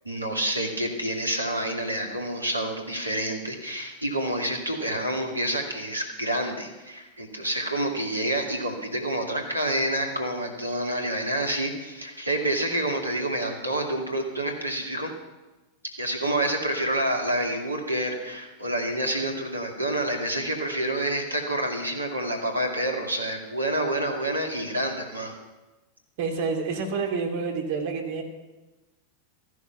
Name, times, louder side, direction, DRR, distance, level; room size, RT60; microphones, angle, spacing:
voice 1, 0.0-15.1 16.0-25.4, right 1 dB, 85° right, 2 dB, 2.3 m, -28 dB
voice 2, 26.2-28.2, right 4 dB, 50° right, 4 dB, 2.5 m, -28 dB
14.5 x 11.0 x 5.9 m, 1.1 s
figure-of-eight pair, 90°, 0 cm